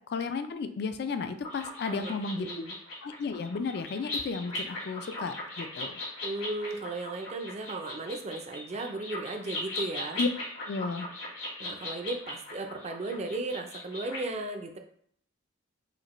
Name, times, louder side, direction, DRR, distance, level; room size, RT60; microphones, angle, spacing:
voice 1, 0.1-2.5 3.0-6.0 10.2-10.3 10.7-11.1, left 4 dB, 50° left, 9 dB, 0.3 m, -33 dB
sound 1, 1.4-14.2, left 2 dB, 70° left, 1.5 m, -39 dB
voice 2, 1.9-2.8 6.2-10.2 11.6-14.8, right 2 dB, 30° right, 5 dB, 0.4 m, -36 dB
4.9 x 2.2 x 3.0 m, 0.63 s
head